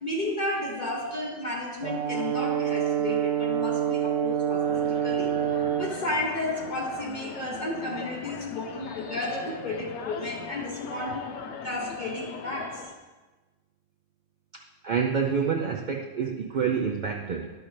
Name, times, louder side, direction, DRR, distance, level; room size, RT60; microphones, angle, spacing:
voice 1, 0.0-11.2 11.6-12.9, left 1 dB, 45° left, -3 dB, 1.0 m, -33 dB
Brass instrument, 1.8-6.0, right 9 dB, 85° right, 1.0 m, -27 dB
sound 1, 4.6-12.9, left 6 dB, 90° left, 0.9 m, -40 dB
voice 2, 14.8-17.5, right 6 dB, 55° right, 2 dB, 0.6 m, -27 dB
11.0 x 6.3 x 3.2 m, 1.2 s
omnidirectional pair, 1.1 m